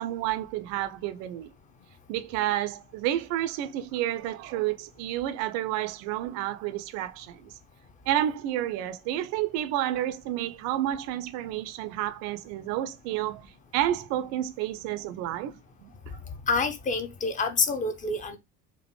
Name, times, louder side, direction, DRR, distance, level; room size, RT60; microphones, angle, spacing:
voice 1, 0.0-1.5 2.1-7.5 8.1-15.9, right 13 dB, 40° right, 0.4 m, -30 dB
voice 2, 16.5-18.4, left 4 dB, 15° left, 0.5 m, -27 dB
4.3 x 2.6 x 2.9 m
figure-of-eight pair, 65°, 46 cm